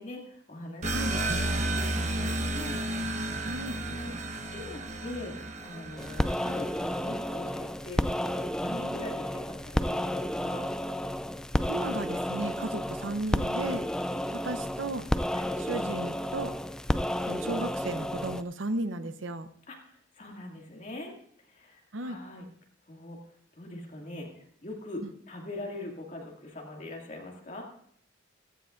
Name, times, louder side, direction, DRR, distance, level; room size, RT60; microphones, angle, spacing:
voice 1, 0.0-2.8 3.9-4.1 4.5-10.7 14.1-14.4 15.3-15.5 19.7-21.2 21.4-22.5 22.9-23.2 23.5-27.6, left 1 dB, 40° left, 0 dB, 2.3 m, -42 dB
sound 1, 0.8-7.1, right 2 dB, 40° right, 1.1 m, -32 dB
voice 2, 3.4-3.8 11.7-13.8 14.3-15.1 15.6-16.5 17.2-19.5 21.9-22.2 25.0-25.1, right 2 dB, 80° right, 10 dB, 0.8 m, -34 dB
sound 2, 6.0-18.4, left 1 dB, 5° left, 0.3 m, -31 dB
16.0 x 14.5 x 2.6 m, 0.66 s
head